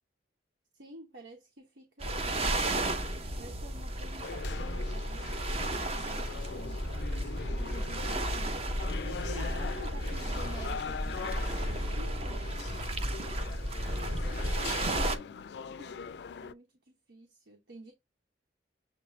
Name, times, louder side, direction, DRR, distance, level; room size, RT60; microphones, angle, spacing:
voice 1, 0.7-2.6 3.4-6.8 7.6-8.7 9.0-12.7 14.1-17.9, right 1 dB, 90° right, 1.0 m, -50 dB
sound 1, 2.0-15.2, right 1 dB, 35° right, 0.7 m, -33 dB
sound 2, 4.2-16.5, left 6 dB, 65° left, 0.3 m, -42 dB
6.8 x 2.5 x 3.2 m
head